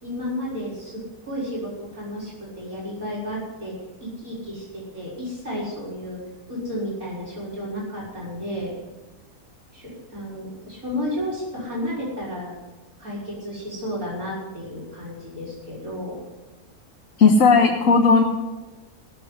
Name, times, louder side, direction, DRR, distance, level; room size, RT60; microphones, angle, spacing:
voice 1, 0.0-3.7 4.0-6.2 6.5-8.7 9.7-12.6 13.0-16.2 17.4-17.7, equal, 65° right, -7 dB, 5.0 m, -32 dB
voice 2, 17.2-18.2, left 4 dB, 60° left, 3 dB, 1.5 m, -15 dB
17.5 x 7.2 x 8.0 m, 1.1 s
omnidirectional pair, 1.6 m